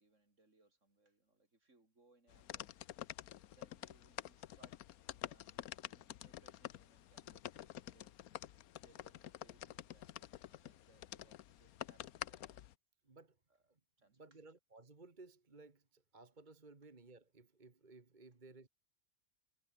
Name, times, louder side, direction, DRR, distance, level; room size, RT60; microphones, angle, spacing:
voice 1, 0.0-2.9 3.5-8.2 8.8-12.6 13.5-14.4, right 2 dB, 55° right, 4.6 m, -71 dB
sound 1, 2.3-12.7, left 12 dB, 90° left, 1.2 m, -49 dB
voice 2, 13.0-13.4 13.7-13.8 14.2-18.7, right 3 dB, 35° right, 2.0 m, -59 dB
omnidirectional pair, 1.5 m